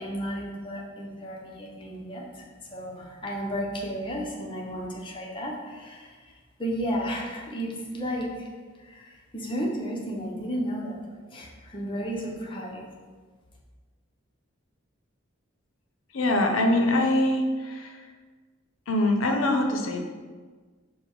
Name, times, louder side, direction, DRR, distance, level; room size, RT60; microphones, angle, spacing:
voice 1, 0.0-11.0 11.3-12.9, equal, 25° left, -2 dB, 0.6 m, -33 dB
voice 2, 16.1-18.1 18.9-20.0, left 1 dB, 75° left, 3 dB, 0.6 m, -23 dB
5.1 x 2.1 x 4.5 m, 1.5 s
head